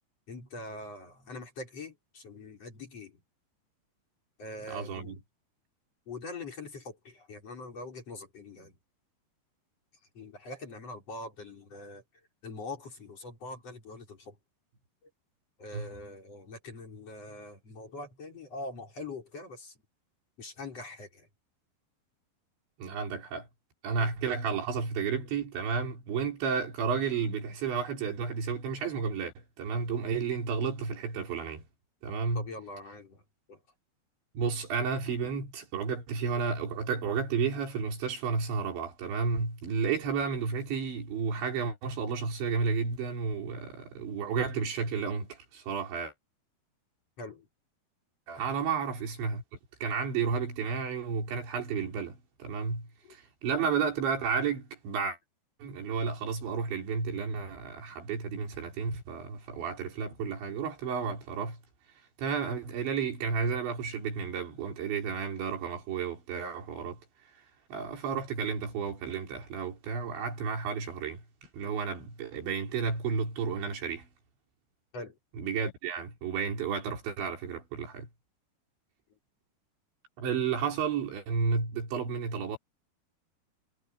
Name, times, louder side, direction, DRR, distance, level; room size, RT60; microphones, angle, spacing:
voice 1, 0.3-3.2 4.4-5.2 6.1-8.8 10.1-12.0 12.4-14.4 15.0-15.1 15.6-19.8 20.4-21.3 24.0-24.1 32.4-33.2 33.5-33.6 47.2-47.5 53.0-53.2 74.9-75.2, left 2 dB, 35° left, 5.7 m, -43 dB
voice 2, 4.7-5.2 15.7-15.9 22.8-23.5 23.8-31.6 32.0-32.5 34.4-46.1 48.3-49.4 49.8-55.2 55.6-61.6 62.2-67.0 67.7-71.2 71.5-74.1 75.4-78.1 80.2-82.6, right 5 dB, 90° right, 7.2 m, -32 dB
omnidirectional pair, 5.1 m